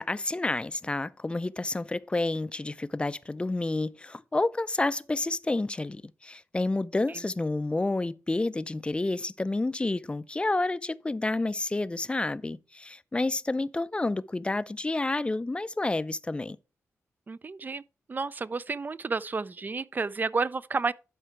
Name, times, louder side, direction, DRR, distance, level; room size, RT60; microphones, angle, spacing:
voice 1, 0.0-16.6, left 2 dB, 20° left, 0.4 m, -29 dB
voice 2, 17.3-17.8 18.1-20.9, right 4 dB, 35° right, 0.4 m, -31 dB
11.0 x 4.6 x 4.6 m
cardioid pair, 75°, 5 cm